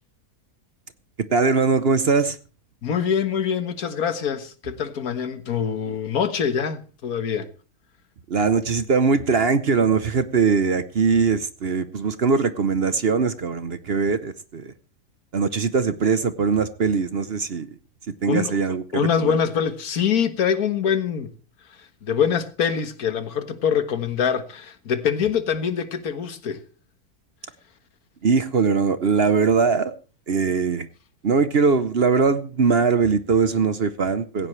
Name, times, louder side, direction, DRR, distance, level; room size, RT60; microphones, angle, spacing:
voice 1, 1.3-2.4 8.3-14.7 15.3-17.7 18.1-19.3 28.2-29.9 30.3-30.9 31.2-34.5, right 5 dB, 45° right, 1.0 m, -21 dB
voice 2, 2.8-7.5 18.3-18.6 18.9-21.3 22.0-26.6, left 7 dB, 65° left, 1.8 m, -24 dB
17.0 x 16.0 x 3.2 m
omnidirectional pair, 1.7 m